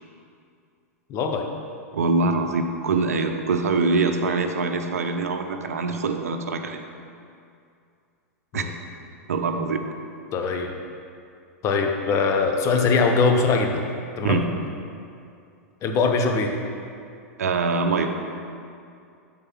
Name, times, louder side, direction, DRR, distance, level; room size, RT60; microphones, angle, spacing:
voice 1, 1.1-1.4 8.5-8.7 10.3-10.7 11.6-13.8 14.2-14.4 15.8-16.5, left 4 dB, 35° left, 3 dB, 0.9 m, -22 dB
voice 2, 1.9-6.8 8.5-8.6 9.3-9.8 14.2-14.4 17.4-18.1, right 3 dB, 75° right, 6 dB, 0.6 m, -24 dB
7.9 x 3.9 x 5.9 m, 2.4 s
hypercardioid pair, 100°, 8 cm